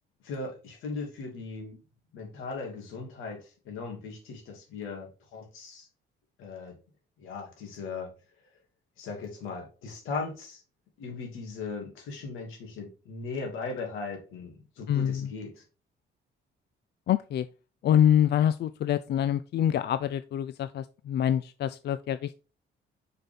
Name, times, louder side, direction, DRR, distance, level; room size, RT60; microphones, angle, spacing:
voice 1, 0.2-1.8 2.1-5.9 6.4-6.8 7.2-8.1 9.0-10.6 11.0-15.6, left 4 dB, 90° left, 2.5 m, -38 dB
voice 2, 14.9-15.3 17.1-17.5 17.8-22.4, left 10 dB, 60° left, 0.4 m, -25 dB
5.8 x 5.4 x 3.6 m
cardioid pair, 90°, 20 cm